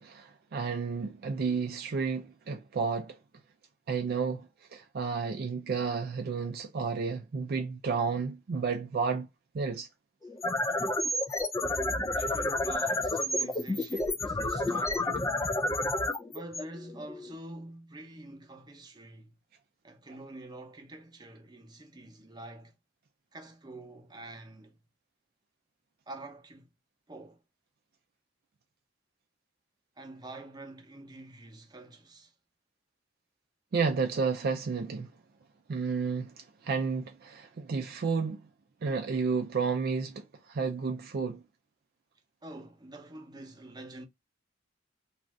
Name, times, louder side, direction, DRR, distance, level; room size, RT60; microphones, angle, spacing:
voice 1, 0.0-3.2 3.9-9.3 9.5-9.9 33.7-35.1 35.7-38.5 38.8-41.4, right 5 dB, 50° right, 0.4 m, -31 dB
sound 1, 10.2-17.3, left 1 dB, 15° left, 0.3 m, -30 dB
voice 2, 11.3-15.3 16.3-19.4 19.8-22.7 23.3-24.8 26.1-26.7 27.1-27.4 30.0-32.3 42.4-44.0, right 2 dB, 20° right, 0.7 m, -47 dB
2.6 x 2.4 x 3.2 m
head